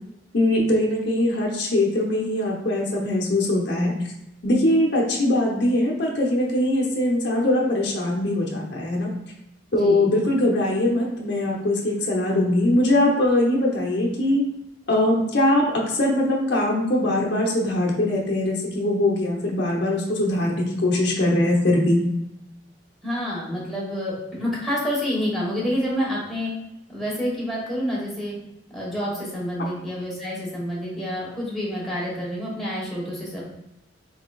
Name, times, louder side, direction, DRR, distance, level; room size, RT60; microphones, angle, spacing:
voice 1, 0.3-3.9 4.4-9.1 9.7-14.4 14.9-22.0, left 1 dB, 65° left, -2 dB, 0.9 m, -21 dB
voice 2, 9.8-10.1 23.0-26.5 26.9-28.4 28.7-33.4, equal, ahead, -7 dB, 1.3 m, -28 dB
4.3 x 4.0 x 2.4 m, 0.90 s
head